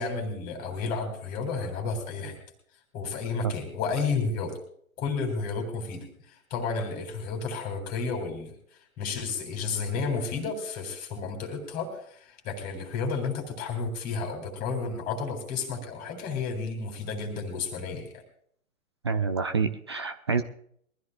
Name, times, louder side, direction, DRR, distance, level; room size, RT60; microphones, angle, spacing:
voice 1, 0.0-2.4 2.9-4.6 5.0-8.6 9.0-18.2, left 4 dB, 20° left, 4 dB, 3.1 m, -32 dB
voice 2, 19.0-20.4, right 5 dB, 20° right, 9 dB, 0.4 m, -27 dB
22.5 x 14.0 x 2.5 m, 0.64 s
figure-of-eight pair, 125°, 42 cm